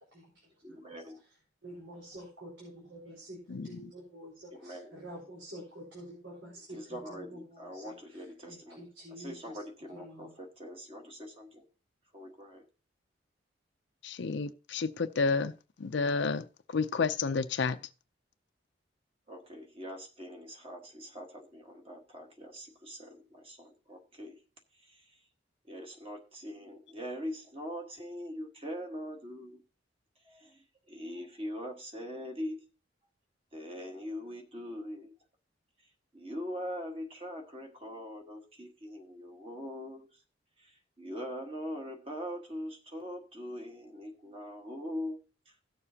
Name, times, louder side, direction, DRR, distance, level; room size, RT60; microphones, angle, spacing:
voice 1, 0.6-1.2 4.5-5.0 6.7-11.7 12.1-12.6 19.3-24.4 24.7-25.2 25.7-29.6 30.2-32.6 33.5-35.1 35.8-40.2 40.6-45.2 45.4-45.6, equal, 30° right, 1.5 m, -42 dB
voice 2, 1.6-3.4 3.6-7.0 7.7-7.8 8.5-9.3 9.9-10.3, right 1 dB, 90° right, 4.4 m, -47 dB
voice 3, 3.5-3.9 14.0-15.5 15.8-17.8, left 4 dB, 70° left, 0.5 m, -31 dB
17.0 x 6.9 x 2.8 m
head